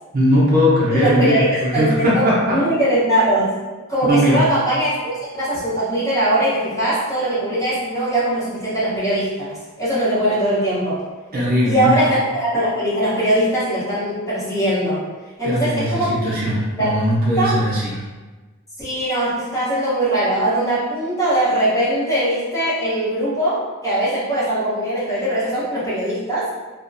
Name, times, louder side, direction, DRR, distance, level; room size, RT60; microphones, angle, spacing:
voice 1, 0.1-2.6 4.0-4.4 11.3-12.0 15.4-17.8, equal, 45° right, -7 dB, 0.6 m, -18 dB
voice 2, 0.9-3.4 3.9-11.0 11.6-15.0 15.4-16.1 16.8-17.0 17.4-17.6 18.8-26.5, right 1 dB, 15° left, -10 dB, 0.9 m, -21 dB
2.4 x 2.1 x 2.5 m, 1.3 s
head